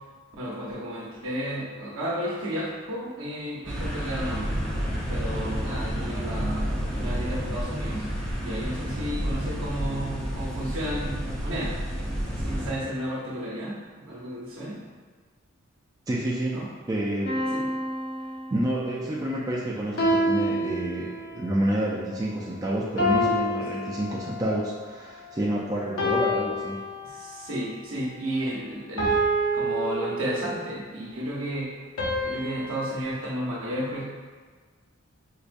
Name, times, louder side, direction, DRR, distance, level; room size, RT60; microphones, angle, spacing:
voice 1, 0.4-4.6 5.1-8.0 8.3-14.8 16.5-16.7 17.5-17.7 27.0-29.1 29.5-31.7 32.2-34.0, equal, 70° right, -5 dB, 0.8 m, -33 dB
sound 1, 3.6-12.7, equal, 5° left, 0.7 m, -30 dB
voice 2, 16.1-16.6 16.9-17.4 18.5-26.8, right 1 dB, 15° right, -5 dB, 0.3 m, -28 dB
sound 2, 17.2-18.9 20.0-21.5 23.0-24.6 26.0-27.5 29.0-30.7 32.0-33.0, equal, 75° left, 0.7 m, -28 dB
4.7 x 2.2 x 2.5 m, 1.5 s
head